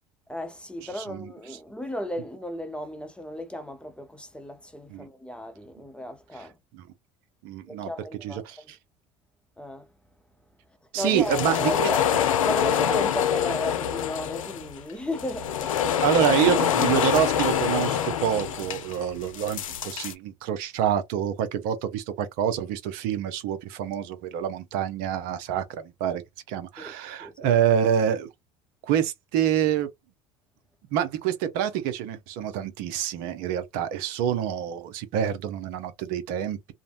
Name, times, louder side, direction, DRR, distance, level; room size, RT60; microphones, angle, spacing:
voice 1, 0.3-6.6 7.7-8.7 9.6-9.9 10.9-12.0 12.4-15.9 26.8-26.9 27.2-27.5, left 1 dB, 5° left, 0.6 m, -35 dB
voice 2, 1.0-1.3 4.9-5.1 6.7-6.9 7.4-7.9 8.2-8.6 10.9-11.9 16.0-26.2 26.5-28.3 28.9-29.9 30.9-36.7, right 9 dB, 65° right, 0.6 m, -27 dB
sound 1, 11.0-20.1, left 9 dB, 90° left, 0.4 m, -25 dB
2.6 x 2.1 x 2.4 m
hypercardioid pair, 75°, 17 cm